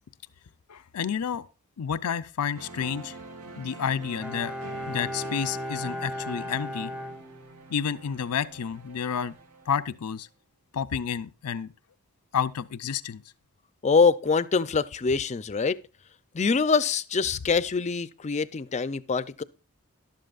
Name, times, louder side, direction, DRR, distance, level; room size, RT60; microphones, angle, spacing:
voice 1, 0.7-1.5 1.8-3.2 3.6-4.5 4.9-6.9 7.7-9.3 9.7-10.3 10.7-11.7 12.3-13.2, left 7 dB, 85° left, 0.5 m, -30 dB
sound 1, 2.5-10.1, right 3 dB, 80° right, 1.3 m, -45 dB
Bowed string instrument, 4.2-7.9 8.2-8.3, left 1 dB, 5° right, 0.8 m, -36 dB
voice 2, 13.8-15.8 16.3-19.4, left 5 dB, 30° left, 0.4 m, -24 dB
13.0 x 12.0 x 2.4 m
head